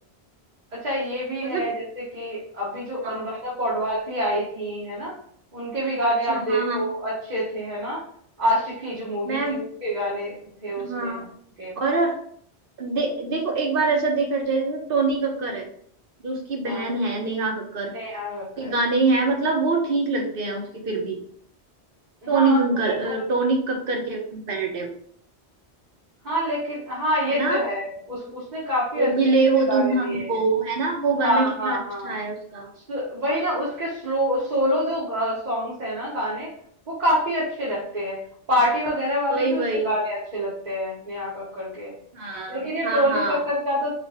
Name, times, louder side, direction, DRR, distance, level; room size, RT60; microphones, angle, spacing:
voice 1, 0.7-5.1 5.5-8.0 8.4-10.3 10.6-11.3 11.6-11.8 16.6-16.9 17.9-18.7 22.2-22.6 22.8-23.1 26.2-29.1 29.7-30.4 31.2-32.2 32.7-36.5 36.9-38.2 38.5-41.9 42.5-43.9, equal, 40° right, -7 dB, 1.3 m, -26 dB
voice 2, 6.3-6.8 9.2-9.6 10.8-11.3 11.8-12.2 12.8-15.7 16.2-17.9 18.6-21.2 22.3-24.9 27.3-27.6 28.9-31.8 32.0-32.7 39.3-39.9 42.1-43.4, right 3 dB, 55° right, 1 dB, 1.1 m, -24 dB
5.0 x 2.6 x 3.4 m, 0.63 s
omnidirectional pair, 1.1 m